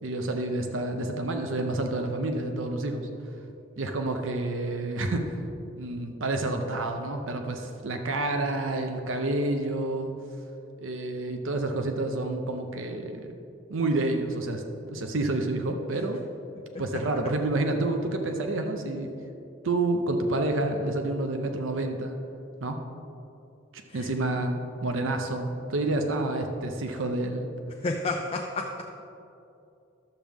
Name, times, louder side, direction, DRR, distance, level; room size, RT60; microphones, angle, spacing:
voice 1, 0.0-3.1 3.8-5.4 5.8-10.1 10.8-13.3 13.7-16.2 16.8-19.1 19.6-22.2 22.6-22.8 23.7-27.5, right 2 dB, 85° right, 5 dB, 0.7 m, -29 dB
voice 2, 27.8-28.8, left 2 dB, 30° left, 1 dB, 0.4 m, -30 dB
12.0 x 7.4 x 3.5 m, 2.7 s
head